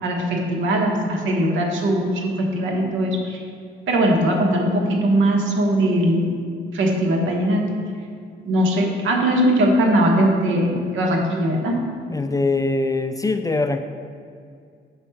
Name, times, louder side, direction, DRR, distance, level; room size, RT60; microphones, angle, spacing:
voice 1, 0.0-3.4 3.9-6.3 6.7-7.6 8.4-11.8, right 1 dB, 75° right, 1 dB, 1.2 m, -20 dB
voice 2, 12.1-13.8, left 3 dB, 20° left, 8 dB, 0.3 m, -22 dB
6.3 x 4.6 x 5.6 m, 2.2 s
cardioid pair, 90°, 20 cm